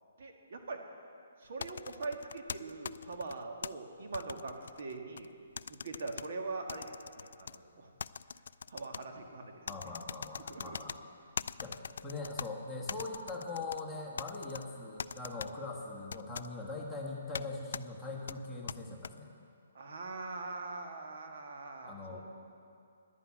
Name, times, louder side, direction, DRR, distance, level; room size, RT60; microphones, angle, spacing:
voice 1, 0.2-0.8 1.4-5.3 5.7-7.9 8.7-9.6 10.5-10.8 19.8-22.2, right 3 dB, 60° right, 3 dB, 1.7 m, -42 dB
sound 1, 1.6-3.7 4.1-5.3 5.6-6.3 6.7-7.6 8.0-9.0 9.7-11.0 11.4-12.5 12.9-13.8 14.2-14.6 15.0-15.5 16.1-16.5 17.3-17.5 17.7-17.8 18.3-19.1, left 6 dB, 70° left, 0.3 m, -41 dB
voice 2, 9.7-11.0 11.6-19.3 21.8-22.2, left 3 dB, 5° left, -4 dB, 1.5 m, -41 dB
11.0 x 11.0 x 8.5 m, 2.5 s
hypercardioid pair, 160°, 0 cm